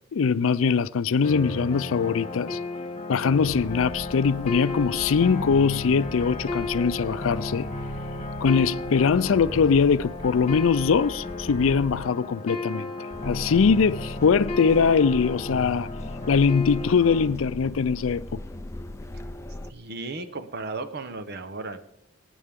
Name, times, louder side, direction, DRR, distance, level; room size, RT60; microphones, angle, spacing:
voice 1, 0.1-2.6 3.1-7.7 8.4-12.9 13.3-15.9 16.3-18.4, left 5 dB, 85° left, 0.4 m, -22 dB
sound 1, 1.2-17.2, left 2 dB, 30° left, 1.7 m, -34 dB
sound 2, 3.4-12.0, left 1 dB, 25° right, 5.1 m, -42 dB
sound 3, 13.1-19.7, left 1 dB, 15° left, 0.5 m, -38 dB
voice 2, 19.7-21.8, right 3 dB, 55° right, 1.0 m, -35 dB
23.0 x 9.2 x 3.6 m
head